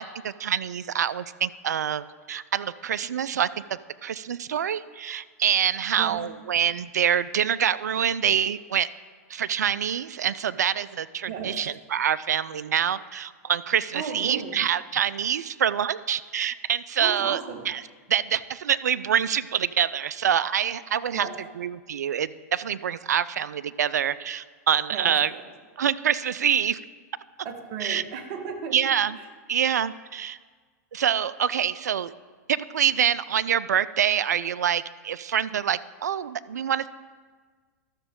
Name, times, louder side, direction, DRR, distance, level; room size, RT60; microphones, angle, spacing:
voice 1, 0.0-3.5 4.0-8.9 9.3-17.4 17.7-17.8 18.1-21.3 21.6-25.3 25.8-26.8 27.8-28.0 28.7-29.2 29.5-30.4 30.9-32.1 32.5-36.8, right 9 dB, 85° right, 17 dB, 0.4 m, -26 dB
voice 2, 11.3-11.6 13.9-14.6 17.0-17.7 21.1-21.3 24.9-25.5 27.4-28.8 29.2-29.3, right 6 dB, 50° right, 5 dB, 1.4 m, -35 dB
12.5 x 7.0 x 3.7 m, 1.5 s
hypercardioid pair, 115°, 9 cm